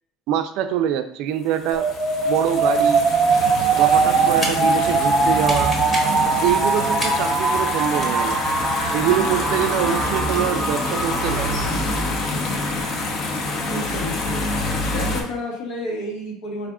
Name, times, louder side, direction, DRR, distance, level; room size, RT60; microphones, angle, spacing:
voice 1, 0.3-1.9 2.2-3.0 3.7-5.7 6.4-8.4 8.9-11.6, right 10 dB, 65° right, 9 dB, 0.4 m, -24 dB
sound 1, 1.6-15.2, left 2 dB, 45° left, 0.8 m, -26 dB
sound 2, 1.7-11.7, right 4 dB, 20° right, 0.8 m, -21 dB
sound 3, 2.9-11.0, equal, 15° left, 1.0 m, -36 dB
voice 2, 13.7-14.5 14.9-16.7, left 1 dB, 85° left, -1 dB, 1.4 m, -30 dB
4.7 x 2.4 x 3.6 m, 0.71 s
cardioid pair, 150°, 0 cm